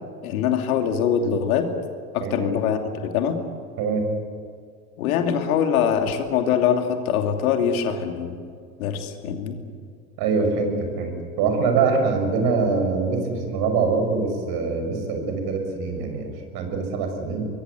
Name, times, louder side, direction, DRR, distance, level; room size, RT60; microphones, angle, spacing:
voice 1, 0.2-1.7 2.1-3.4 5.0-8.3 8.8-9.6, left 8 dB, 75° left, 5 dB, 2.9 m, -23 dB
voice 2, 10.2-17.5, right 4 dB, 55° right, 5 dB, 6.1 m, -24 dB
24.5 x 22.5 x 8.3 m, 2.3 s
hypercardioid pair, 80°, 43 cm